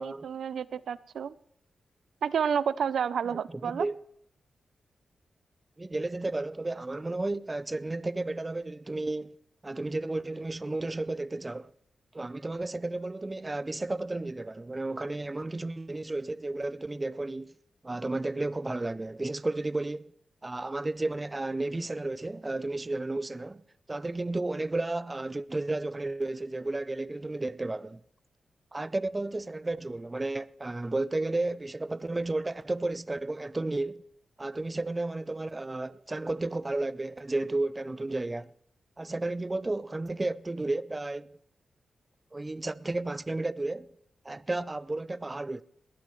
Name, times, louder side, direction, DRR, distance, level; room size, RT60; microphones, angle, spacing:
voice 1, 0.0-1.3 2.2-3.9, right 7 dB, 80° right, 0.5 m, -30 dB
voice 2, 3.3-4.0 5.8-9.4 9.6-11.7 12.1-17.5 17.8-20.1 20.4-23.6 23.9-28.0 28.7-34.1 34.4-38.5 39.0-41.4 42.3-43.9 44.2-45.6, right 2 dB, 20° right, 0.5 m, -33 dB
20.0 x 18.5 x 3.2 m
cardioid pair, 95°, 0 cm